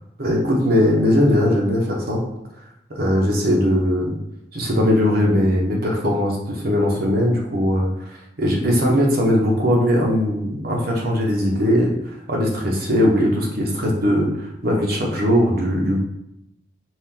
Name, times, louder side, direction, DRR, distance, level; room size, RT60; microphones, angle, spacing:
voice 1, 0.2-2.2 3.0-4.2 4.5-7.9 8.4-11.9 12.3-16.0, equal, 60° right, -1 dB, 1.0 m, -19 dB
4.5 x 2.5 x 3.8 m, 0.85 s
head